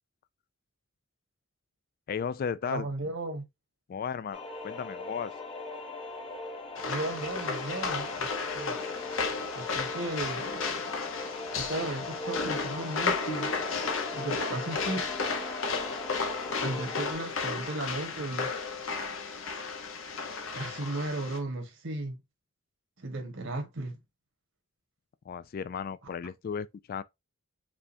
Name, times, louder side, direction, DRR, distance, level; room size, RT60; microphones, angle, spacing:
voice 1, 2.1-2.9 3.9-5.3 25.3-27.0, left 6 dB, 45° left, 0.3 m, -35 dB
voice 2, 2.6-3.4 6.9-8.8 9.5-10.4 11.6-13.5 14.1-15.1 16.6-18.5 20.5-22.2 23.0-24.0, right 2 dB, 65° right, 1.4 m, -35 dB
sound 1, 4.3-17.1, left 2 dB, 25° left, 1.0 m, -40 dB
sound 2, 6.8-21.4, left 4 dB, 70° left, 1.0 m, -33 dB
5.0 x 3.4 x 2.7 m
head